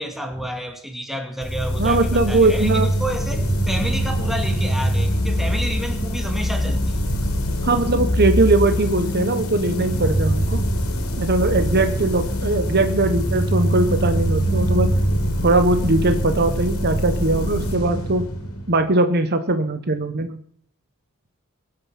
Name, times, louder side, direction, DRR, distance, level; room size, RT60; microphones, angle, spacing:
voice 1, 0.0-7.0, equal, ahead, 2.1 m, -30 dB
sound 1, 1.4-18.9, equal, 80° left, 2.9 m, -23 dB
voice 2, 1.8-2.9 7.6-10.6 11.2-14.9 15.4-18.3 18.7-20.4, right 2 dB, 50° right, 1.1 m, -20 dB
22.5 x 7.9 x 5.9 m
head